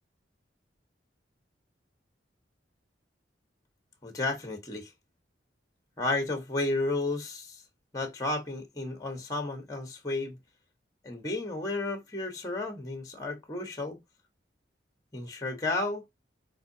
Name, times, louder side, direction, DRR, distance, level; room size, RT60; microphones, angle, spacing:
voice 1, 4.0-4.9 6.0-7.6 7.9-10.4 11.0-14.0 15.1-16.0, left 2 dB, 20° left, 1.1 m, -32 dB
4.6 x 3.9 x 2.7 m
head